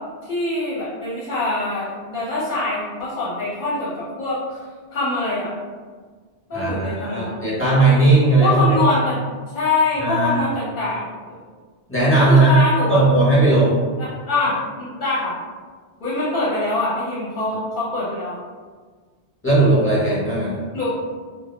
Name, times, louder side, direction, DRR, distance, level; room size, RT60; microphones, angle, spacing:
voice 1, 0.2-4.6 4.9-5.5 6.5-7.4 8.4-9.2 9.5-11.4 12.3-13.0 14.0-15.4 16.0-18.4 20.7-20.9, left 2 dB, 55° left, -8 dB, 0.7 m, -24 dB
voice 2, 6.5-9.0 10.0-10.3 11.9-12.6 12.9-13.8 19.4-20.6, right 2 dB, 15° left, -10 dB, 0.6 m, -17 dB
2.1 x 2.0 x 3.0 m, 1.5 s
omnidirectional pair, 1.1 m